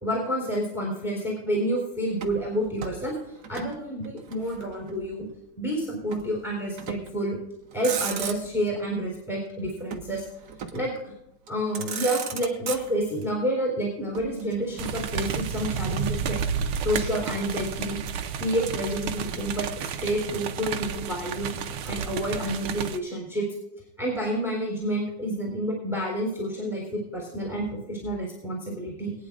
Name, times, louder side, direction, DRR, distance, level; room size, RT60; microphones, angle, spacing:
voice 1, 0.0-3.2 3.5-5.3 5.6-7.4 7.7-10.3 10.7-11.1 11.5-16.4 16.8-18.0 18.4-21.6 21.8-23.5 24.0-29.3, right 1 dB, ahead, -2 dB, 3.7 m, -29 dB
Motor vehicle (road), 2.1-3.8 4.0-5.1 6.1-6.3 6.8-7.2 7.6-8.7 9.9-11.0 11.5-11.6 11.7-13.3 14.1-15.8, right 7 dB, 60° right, 1.5 m, -36 dB
sound 1, 14.8-23.0, right 6 dB, 80° right, 1.7 m, -31 dB
22.0 x 9.6 x 2.5 m, 0.88 s
omnidirectional pair, 2.3 m